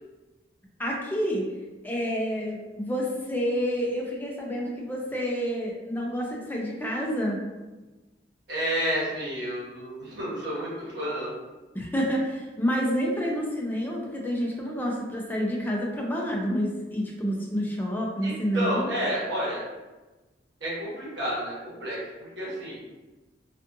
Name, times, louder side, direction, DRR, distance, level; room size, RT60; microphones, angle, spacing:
voice 1, 0.8-1.5 1.8-7.4 11.7-18.9, equal, 10° left, -2 dB, 0.4 m, -28 dB
voice 2, 8.5-11.3 18.2-19.6 20.6-22.8, equal, 70° right, -7 dB, 1.2 m, -30 dB
2.5 x 2.4 x 2.6 m, 1.2 s
head